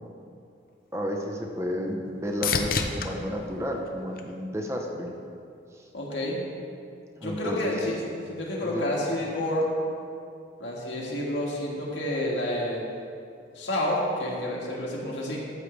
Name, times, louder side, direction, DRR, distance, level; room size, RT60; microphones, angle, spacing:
sound 1, 0.7-4.9 5.4-6.0 13.9-14.0, left 5 dB, 50° left, 0.6 m, -34 dB
voice 1, 0.9-5.1 5.7-5.9 7.2-7.7 8.6-8.8, equal, 15° right, 1 dB, 0.9 m, -32 dB
voice 2, 5.9-6.4 7.2-7.9 8.3-9.7 10.6-12.8 13.6-15.4, left 1 dB, 80° left, -4 dB, 2.1 m, -29 dB
13.5 x 7.5 x 3.3 m, 2.4 s
head